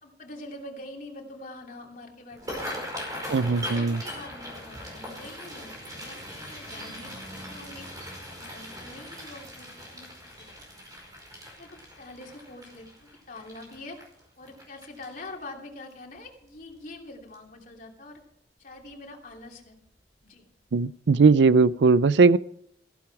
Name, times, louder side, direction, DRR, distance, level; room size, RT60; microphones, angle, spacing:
voice 1, 0.0-2.7 3.1-7.8 8.3-10.8 11.6-14.0 14.4-18.2 18.6-19.8 20.2-20.4, left 2 dB, 50° left, 1 dB, 3.0 m, -45 dB
sound 1, 2.3-15.4 15.9-16.2 16.5-16.9 17.3-17.5 18.7-18.9 19.3-19.4 19.9-20.0, equal, 20° right, 5.3 m, -40 dB
voice 2, 3.3-4.0 20.7-22.4, right 4 dB, 80° right, 18 dB, 0.5 m, -19 dB
15.0 x 12.0 x 4.7 m, 0.71 s
head